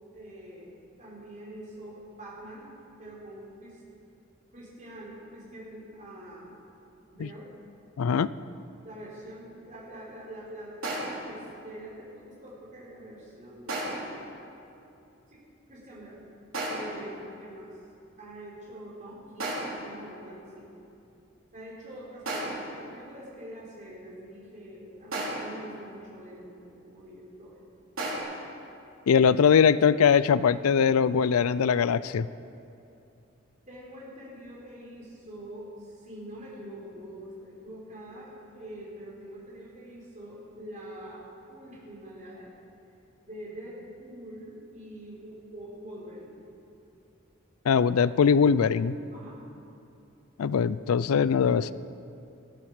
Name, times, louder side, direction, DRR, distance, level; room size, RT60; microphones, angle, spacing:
voice 1, 0.1-2.7 3.0-3.8 4.5-6.5 7.1-7.5 8.8-14.1 15.3-15.4 15.7-16.2 16.6-17.8 18.2-20.7 21.5-27.6 33.7-42.6 43.2-46.3 49.1-49.4, right 1 dB, 35° right, -5 dB, 4.2 m, -45 dB
voice 2, 8.0-8.3 29.1-32.3 47.7-48.9 50.4-51.7, left 6 dB, 90° left, 17 dB, 0.4 m, -21 dB
sound 1, 10.8-11.3 13.7-14.2 16.5-17.1 19.4-19.9 22.3-22.8 25.1-25.6 28.0-28.2, right 1 dB, 70° right, 3.4 m, -33 dB
19.0 x 13.5 x 4.9 m, 2.7 s
head